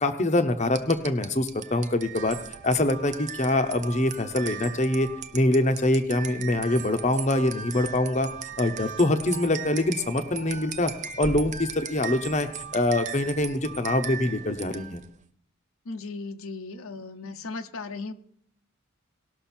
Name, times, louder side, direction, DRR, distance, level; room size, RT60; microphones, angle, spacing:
voice 1, 0.0-2.4 2.6-5.1 5.3-8.3 8.6-10.9 11.2-15.0, left 1 dB, 30° left, 7 dB, 0.8 m, -24 dB
sound 1, 0.7-15.2, right 7 dB, 35° right, 0.6 m, -38 dB
voice 2, 15.9-18.1, left 3 dB, 80° left, 6 dB, 0.9 m, -36 dB
19.0 x 6.3 x 4.4 m, 0.64 s
head